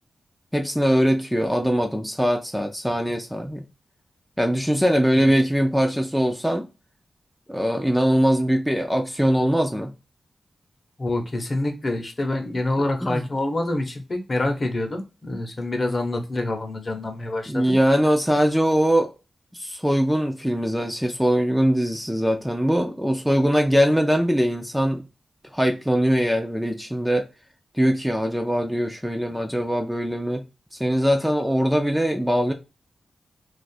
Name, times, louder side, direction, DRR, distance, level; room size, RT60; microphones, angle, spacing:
voice 1, 0.5-3.6 4.4-6.7 7.5-9.9 13.0-13.2 17.5-19.1 19.5-25.0 25.5-27.2 27.7-30.4 30.8-32.5, equal, 5° right, 0.4 m, -21 dB
voice 2, 11.0-17.8, left 2 dB, 40° left, 0.8 m, -26 dB
2.5 x 2.4 x 4.0 m
wide cardioid pair, 85°, 0 cm